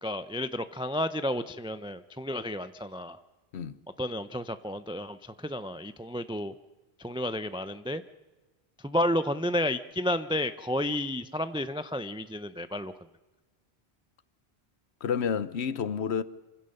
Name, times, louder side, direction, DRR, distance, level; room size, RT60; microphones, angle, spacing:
voice 1, 0.0-3.2 4.0-6.5 7.0-8.0 8.8-12.9, left 1 dB, 5° right, 0.4 m, -31 dB
voice 2, 15.0-16.2, left 7 dB, 90° left, 1.1 m, -29 dB
26.0 x 16.0 x 6.6 m
omnidirectional pair, 1.1 m